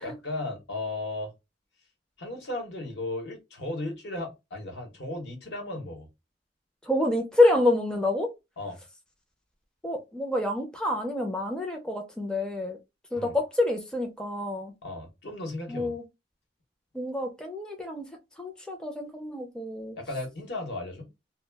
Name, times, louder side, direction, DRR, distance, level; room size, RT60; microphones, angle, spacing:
voice 1, 0.0-1.3 2.2-6.1 8.6-8.8 13.1-13.3 14.8-16.0 20.0-21.1, left 2 dB, 65° left, 1.0 m, -35 dB
voice 2, 6.9-8.3 9.8-12.8 13.1-14.7 15.7-16.0 16.9-18.1 18.4-20.0, left 2 dB, 5° left, 0.4 m, -27 dB
2.2 x 2.1 x 3.2 m
head